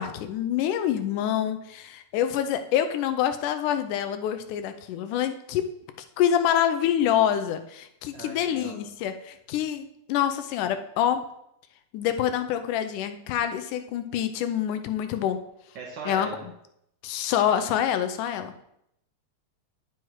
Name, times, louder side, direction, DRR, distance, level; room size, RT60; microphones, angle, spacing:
voice 1, 0.0-5.7 6.2-11.2 11.9-15.4 16.1-16.3 17.0-18.5, left 10 dB, 90° left, 9 dB, 2.2 m, -26 dB
voice 2, 8.1-8.8 15.7-16.4, right 4 dB, 65° right, -1 dB, 1.0 m, -38 dB
9.2 x 5.9 x 4.7 m, 0.78 s
omnidirectional pair, 3.5 m